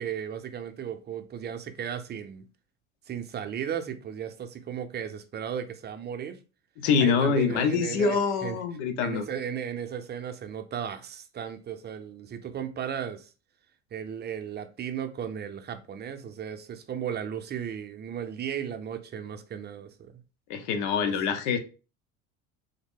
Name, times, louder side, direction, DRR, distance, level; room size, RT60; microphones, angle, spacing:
voice 1, 0.0-2.5 3.1-6.4 7.0-8.6 9.0-13.3 13.9-20.1 21.0-21.2, right 8 dB, 30° right, 0.5 m, -35 dB
voice 2, 6.8-9.2 20.5-21.6, left 5 dB, 85° left, 0.8 m, -25 dB
3.5 x 2.1 x 3.6 m
supercardioid pair, 100°, 34 cm